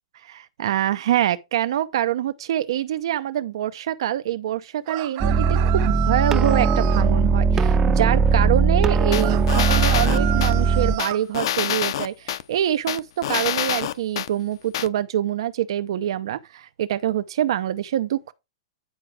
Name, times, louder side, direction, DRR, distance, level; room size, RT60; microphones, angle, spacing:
voice 1, 0.1-18.3, right 11 dB, 70° right, 0.7 m, -25 dB
sound 1, 4.9-7.1 9.2-11.2, right 14 dB, 40° right, 0.9 m, -31 dB
sound 2, 5.2-11.0, right 5 dB, 15° right, 0.6 m, -19 dB
sound 3, 9.1-10.5 11.0-12.4 12.9-14.3 14.7-14.9, left 11 dB, 65° left, 0.8 m, -26 dB
9.4 x 4.9 x 4.7 m
hypercardioid pair, 145°, 3 cm